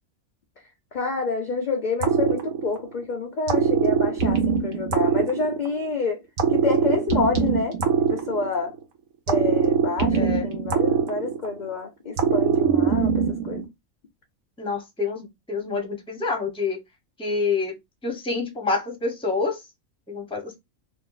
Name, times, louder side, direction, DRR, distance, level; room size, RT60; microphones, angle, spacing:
voice 1, 0.9-6.2 6.5-7.8 8.1-8.7 9.3-13.6, left 4 dB, 60° left, 0.4 m, -28 dB
sound 1, 2.0-3.0 3.5-5.9 6.4-8.8 9.3-11.7 12.2-13.7, right 6 dB, 80° right, 1.2 m, -22 dB
voice 2, 10.1-10.5 14.6-16.8 17.2-17.8 18.0-19.6 20.1-20.5, left 4 dB, 5° left, 0.6 m, -27 dB
2.6 x 2.6 x 3.8 m
omnidirectional pair, 1.4 m